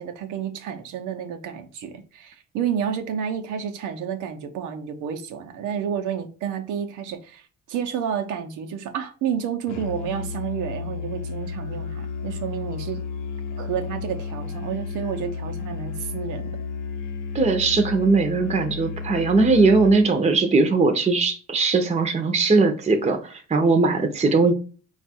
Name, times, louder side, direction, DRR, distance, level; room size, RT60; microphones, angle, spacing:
voice 1, 0.0-7.4 7.7-13.0 13.6-16.6, right 8 dB, 90° right, 0.7 m, -30 dB
Musical instrument, 9.7-20.1, left 5 dB, 80° left, 0.7 m, -32 dB
voice 2, 17.3-24.5, right 3 dB, 20° right, 0.6 m, -19 dB
4.4 x 2.4 x 4.2 m
cardioid pair, 90°, 30 cm